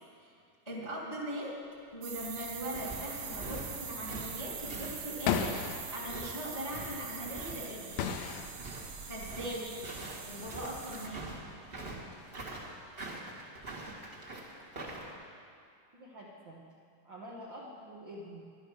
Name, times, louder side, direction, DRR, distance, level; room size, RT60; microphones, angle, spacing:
voice 1, 0.6-1.5 1.9-8.1 9.0-9.8 10.2-11.2, equal, 15° left, -5 dB, 1.3 m, -40 dB
sound 1, 1.9-15.1, right 2 dB, 30° right, 1.0 m, -45 dB
sound 2, 2.0-11.1, right 6 dB, 60° right, 1.8 m, -43 dB
sound 3, 3.1-6.6 7.4-7.5 8.0-8.5, left 8 dB, 85° left, 2.5 m, -35 dB
voice 2, 15.9-16.6 17.0-18.5, equal, 75° right, -4 dB, 1.0 m, -47 dB
12.5 x 11.5 x 6.4 m, 2.4 s
omnidirectional pair, 4.3 m